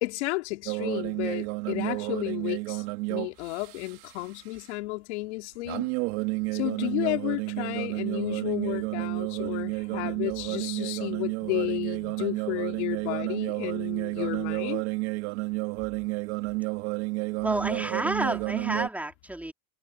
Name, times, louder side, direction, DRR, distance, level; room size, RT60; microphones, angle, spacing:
voice 1, 0.0-2.8 3.1-5.9 6.5-14.8, left 22 dB, 80° left, 3.3 m, -32 dB
sound 1, 0.7-4.2 5.6-18.9, right 26 dB, 75° right, 2.9 m, -31 dB
voice 2, 17.4-19.5, right 1 dB, 5° right, 4.3 m, -30 dB
supercardioid pair, 95°, 34 cm